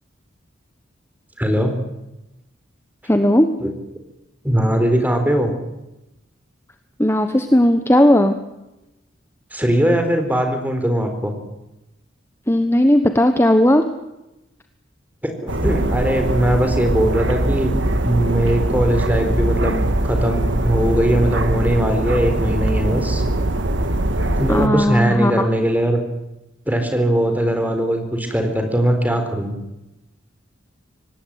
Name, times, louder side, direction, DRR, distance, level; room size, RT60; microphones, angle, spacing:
voice 1, 1.4-1.7 3.6-3.7 4.4-5.5 9.5-11.3 15.2-17.8 18.0-23.2 24.4-26.0 26.7-29.5, right 1 dB, 10° right, 6 dB, 4.2 m, -20 dB
voice 2, 3.0-3.5 7.0-8.3 12.5-13.8 24.5-25.5, left 1 dB, 15° left, 7 dB, 1.2 m, -16 dB
sound 1, 15.5-24.7, right 1 dB, 65° right, 2.0 m, -21 dB
25.5 x 18.5 x 9.5 m, 0.96 s
head